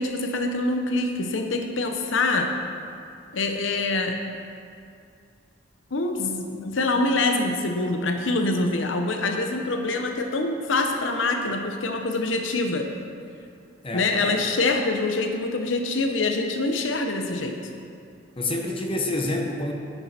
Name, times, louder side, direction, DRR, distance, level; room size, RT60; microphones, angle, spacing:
voice 1, 0.0-2.5 3.3-4.2 5.9-12.9 13.9-17.6, left 2 dB, 75° left, 4 dB, 0.8 m, -25 dB
voice 2, 13.8-14.4 18.4-19.7, left 2 dB, 30° left, 2 dB, 0.9 m, -28 dB
10.0 x 10.0 x 4.3 m, 2.4 s
head